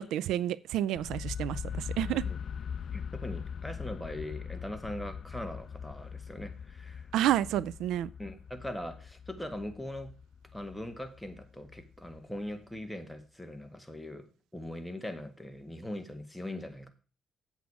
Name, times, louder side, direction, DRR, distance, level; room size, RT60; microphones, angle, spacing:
voice 1, 0.0-2.2 7.1-8.1, right 12 dB, 85° right, 0.4 m, -30 dB
sound 1, 1.0-12.8, left 7 dB, 55° left, 0.4 m, -41 dB
voice 2, 2.9-7.1 8.2-10.1 10.5-14.3 14.5-16.9, left 1 dB, ahead, 1.8 m, -41 dB
8.3 x 8.3 x 4.8 m
cardioid pair, 90°, 0 cm